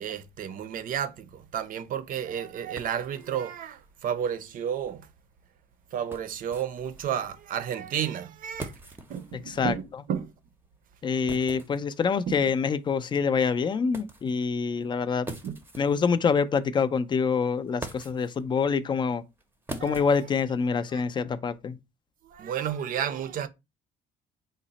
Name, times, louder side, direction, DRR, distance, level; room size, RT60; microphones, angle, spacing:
voice 1, 0.0-5.1 5.9-8.7 9.1-10.3 12.3-12.4 15.4-15.6 19.8-20.1 20.9-21.0 22.2-23.5, right 9 dB, 55° right, 0.5 m, -32 dB
sound 1, 1.4-21.0, right 2 dB, 15° right, 0.6 m, -46 dB
voice 2, 9.3-9.7 11.0-15.3 15.8-19.2 19.8-21.8, left 5 dB, 25° left, 0.3 m, -26 dB
3.9 x 2.0 x 3.9 m
cardioid pair, 110°, 17 cm